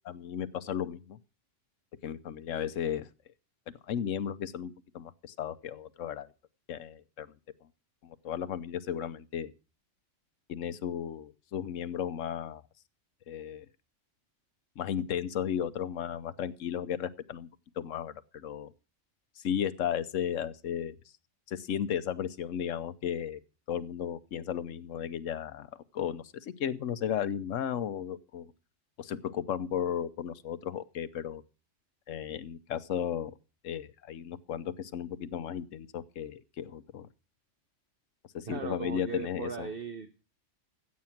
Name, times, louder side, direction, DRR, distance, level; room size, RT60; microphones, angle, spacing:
voice 1, 0.0-1.2 2.0-3.1 3.9-6.3 6.7-7.3 8.0-9.5 10.5-12.6 13.3-13.6 14.8-17.5 17.8-18.7 19.4-20.9 21.5-23.4 23.7-28.5 29.0-31.4 32.1-33.3 33.6-37.1 38.3-39.7, left 9 dB, 90° left, 1.2 m, -34 dB
voice 2, 38.5-40.2, right 5 dB, 50° right, 1.1 m, -38 dB
14.0 x 8.6 x 5.8 m
omnidirectional pair, 1.3 m